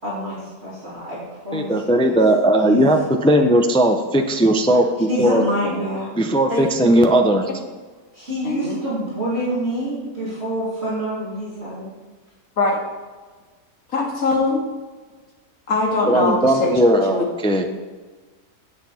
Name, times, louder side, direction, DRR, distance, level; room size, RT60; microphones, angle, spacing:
voice 1, 0.0-2.2 2.6-2.9 5.1-6.1 8.1-11.9, equal, 45° right, -9 dB, 3.4 m, -27 dB
voice 2, 1.5-5.4 6.2-7.5 16.1-17.6, right 1 dB, 10° left, 4 dB, 0.3 m, -17 dB
voice 3, 8.4-8.8 12.6-12.8 13.9-14.6 15.7-16.7 17.1-17.2, left 3 dB, 65° left, -2 dB, 2.5 m, -21 dB
9.6 x 8.2 x 4.3 m, 1.4 s
omnidirectional pair, 1.6 m